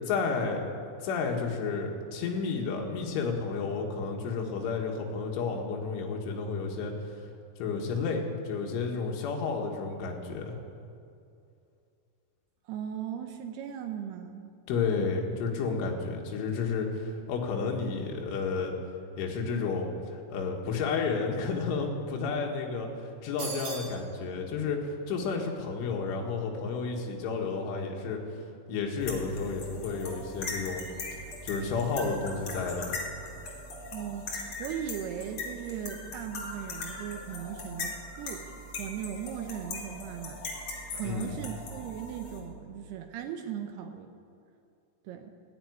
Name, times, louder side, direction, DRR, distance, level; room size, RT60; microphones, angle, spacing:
voice 1, 0.1-0.7 1.0-6.9 7.6-10.6 14.7-18.7 19.2-28.2 28.7-30.8 31.4-32.9 41.0-41.4, left 4 dB, 75° left, 0 dB, 4.1 m, -31 dB
voice 2, 12.7-14.5 33.9-38.5 38.8-40.7 40.9-44.1 45.0-45.3, right 9 dB, 85° right, 5 dB, 2.3 m, -38 dB
sound 1, 23.4-24.0, right 4 dB, 50° right, 4.1 m, -37 dB
sound 2, 29.0-42.4, left 2 dB, 45° left, 2.5 m, -40 dB
14.5 x 10.5 x 9.5 m, 2.5 s
omnidirectional pair, 5.8 m